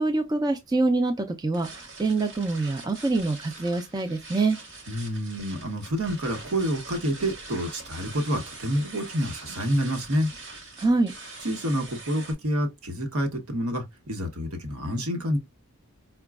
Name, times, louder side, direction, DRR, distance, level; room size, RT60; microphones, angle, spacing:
voice 1, 0.0-4.6 10.8-11.1, right 3 dB, 15° right, 0.3 m, -25 dB
sound 1, 1.5-12.3, right 3 dB, 50° right, 1.1 m, -43 dB
voice 2, 4.9-10.3 11.4-15.4, equal, 75° right, 1.0 m, -28 dB
4.8 x 2.2 x 2.3 m
head